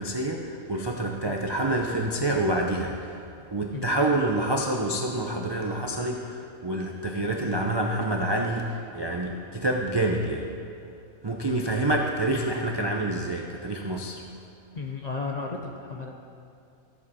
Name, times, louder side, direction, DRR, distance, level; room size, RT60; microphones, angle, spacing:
voice 1, 0.0-3.2 3.5-10.5 11.2-14.2, right 1 dB, 35° right, 1 dB, 0.4 m, -27 dB
voice 2, 14.7-16.1, left 4 dB, 45° left, 1 dB, 0.6 m, -34 dB
14.0 x 8.1 x 4.1 m, 2.5 s
omnidirectional pair, 1.4 m